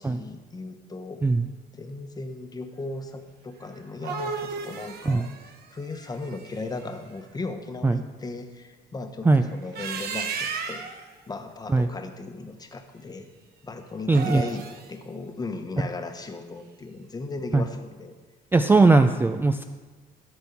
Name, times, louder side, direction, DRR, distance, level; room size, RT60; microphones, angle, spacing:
voice 1, 0.0-1.2 1.7-10.8 11.3-13.3 13.6-18.2, left 3 dB, 20° left, 6 dB, 1.0 m, -37 dB
sound 1, 3.8-6.8 9.5-11.0 14.0-14.9, right 5 dB, 65° right, 1.1 m, -34 dB
voice 2, 14.1-14.4 17.5-17.6 18.5-19.6, right 3 dB, 10° right, 8 dB, 0.4 m, -19 dB
13.0 x 4.4 x 7.1 m, 1.3 s
cardioid pair, 110°, 17 cm